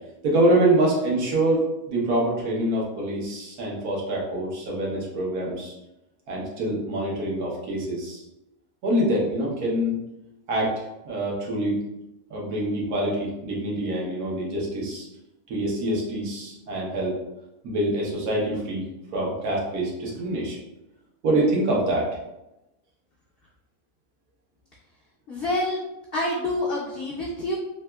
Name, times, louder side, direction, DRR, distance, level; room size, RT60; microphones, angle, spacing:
voice 1, 0.2-5.7 6.3-8.2 8.8-9.9 10.5-10.7 11.0-11.8 12.3-15.1 15.5-17.1 17.6-18.8 19.1-20.6 21.2-22.1, right 1 dB, 80° right, -4 dB, 1.4 m, -25 dB
voice 2, 25.3-25.8 26.1-27.6, left 1 dB, 55° left, -5 dB, 0.7 m, -27 dB
3.5 x 2.8 x 2.2 m, 0.93 s
omnidirectional pair, 1.6 m